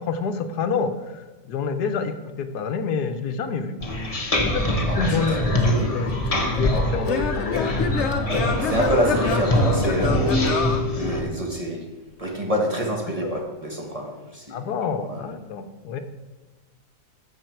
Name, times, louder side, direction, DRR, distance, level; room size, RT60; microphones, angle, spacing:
voice 1, 0.0-3.8 4.4-5.5 5.9-6.1 6.4-7.7 13.2-13.4 14.5-16.0, left 5 dB, 80° left, 8 dB, 1.4 m, -28 dB
sound 1, 3.8-11.2, left 1 dB, 25° left, 1.1 m, -24 dB
voice 2, 4.9-6.0 8.6-11.8 12.2-14.6 14.9-15.3, right 1 dB, 25° right, 0 dB, 1.4 m, -27 dB
Singing / Plucked string instrument, 5.8-11.7, left 4 dB, 50° left, 1.0 m, -28 dB
14.5 x 5.8 x 4.5 m, 1.3 s
omnidirectional pair, 1.7 m